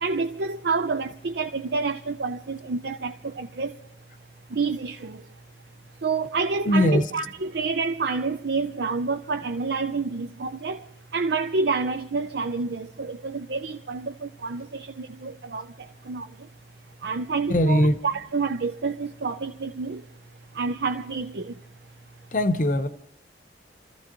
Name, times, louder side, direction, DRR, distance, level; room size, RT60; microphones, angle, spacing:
voice 1, 0.0-3.7 4.5-5.2 6.0-10.8 11.1-15.6 16.1-16.3 17.0-20.0 20.6-21.5, right 4 dB, 65° right, 0.6 m, -28 dB
voice 2, 6.6-7.1 17.5-18.0 22.3-22.9, equal, 45° left, 0.8 m, -20 dB
29.0 x 14.5 x 3.0 m
head